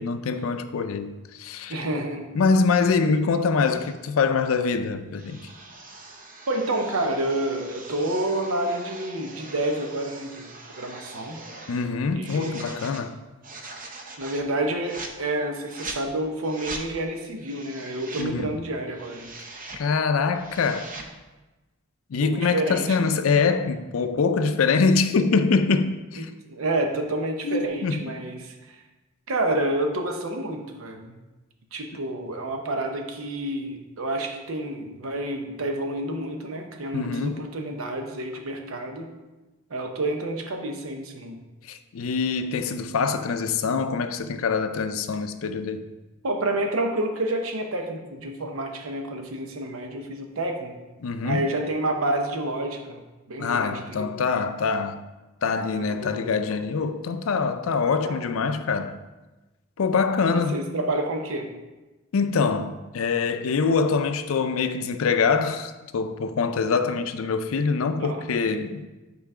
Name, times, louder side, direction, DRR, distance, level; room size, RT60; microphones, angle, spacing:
voice 1, 0.0-1.8 2.3-5.4 11.7-13.2 18.2-18.5 19.8-20.9 22.1-26.3 27.4-28.0 36.9-37.4 41.7-45.8 51.0-51.4 53.4-55.0 55.4-59.0 59.8-60.6 62.1-68.9, left 5 dB, 80° left, 0.4 m, -24 dB
voice 2, 1.7-2.3 2.8-2.9 6.5-10.5 10.8-11.4 12.1-12.7 14.2-19.3 22.2-23.1 26.1-28.8 29.3-31.2 31.7-39.1 39.7-41.4 46.2-50.8 51.2-53.0 53.3-54.1 55.8-56.4 58.0-58.2 60.2-61.5 68.0-68.2, right 1 dB, 90° right, 0.8 m, -29 dB
sound 1, 3.8-4.0 5.1-11.9 12.2-13.0 13.4-14.5 14.8-15.1 15.7-16.0 16.4-16.9 17.4-18.3 18.8-19.8 20.2-21.1, right 3 dB, 40° right, 0.7 m, -41 dB
5.6 x 4.0 x 4.8 m
head